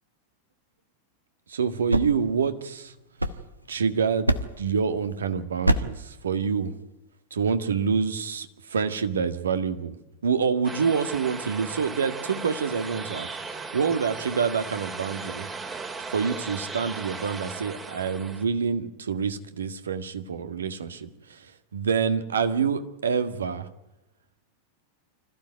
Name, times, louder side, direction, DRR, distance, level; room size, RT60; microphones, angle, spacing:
voice 1, 1.5-2.9 3.7-6.8 7.3-10.0 10.2-15.5 16.1-23.7, right 6 dB, 70° right, 10 dB, 1.8 m, -27 dB
sound 1, 1.6-3.8 4.3-4.8 5.6-6.1, right 1 dB, 85° right, 1.2 m, -27 dB
sound 2, 10.6-18.4, right 4 dB, 20° right, 2.4 m, -37 dB
25.5 x 15.0 x 9.3 m, 0.96 s
figure-of-eight pair, 90°, 0 cm